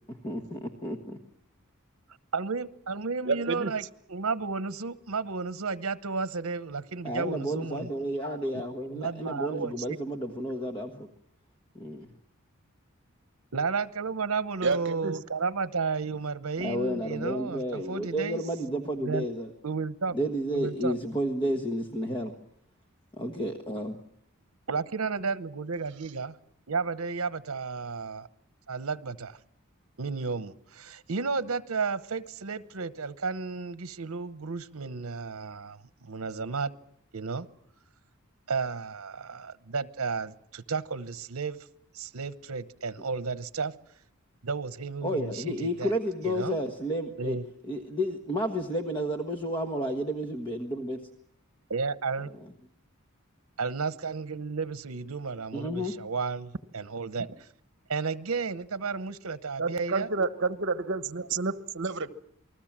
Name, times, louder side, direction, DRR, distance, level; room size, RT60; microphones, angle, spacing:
voice 1, 0.1-1.2 7.0-11.1 11.7-12.1 16.6-19.5 20.1-22.3 23.1-24.0 45.0-47.4 47.6-51.0 52.3-52.5 55.5-55.9, equal, 25° left, 1.5 m, -31 dB
voice 2, 2.3-7.9 8.9-10.0 13.5-18.4 19.0-19.3 19.6-20.2 20.5-20.9 24.7-26.4 26.7-28.3 28.7-29.4 30.0-36.7 37.1-37.5 38.5-41.6 41.9-43.7 44.4-45.9 46.2-46.6 47.2-47.4 51.7-52.3 53.6-57.5 57.9-60.1, right 4 dB, 75° right, 0.9 m, -33 dB
voice 3, 3.2-3.7 14.6-15.2 59.6-62.1, right 4 dB, 60° right, 1.2 m, -29 dB
28.5 x 20.5 x 7.4 m
head